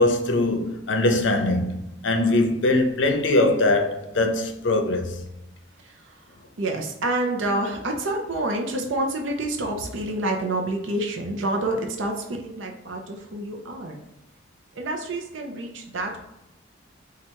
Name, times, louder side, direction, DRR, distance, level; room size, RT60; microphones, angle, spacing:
voice 1, 0.0-5.2, left 2 dB, 70° left, 0.6 m, -22 dB
voice 2, 6.6-14.0 14.8-16.2, right 2 dB, 75° right, 0.6 m, -28 dB
4.3 x 2.4 x 4.4 m
head